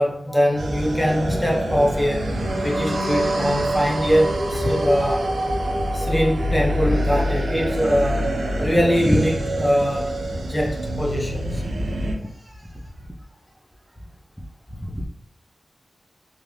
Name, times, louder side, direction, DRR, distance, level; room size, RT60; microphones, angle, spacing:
voice 1, 0.0-5.3 5.9-8.3 8.6-10.2 10.5-11.8 14.8-15.1, equal, 5° left, -2 dB, 0.4 m, -22 dB
sound 1, 0.6-12.2, right 1 dB, 85° right, 0.4 m, -25 dB
voice 2, 12.1-13.6 13.9-14.0, right 1 dB, 50° right, -4 dB, 1.2 m, -58 dB
2.4 x 2.3 x 3.2 m, 0.78 s
wide cardioid pair, 75°, 0 cm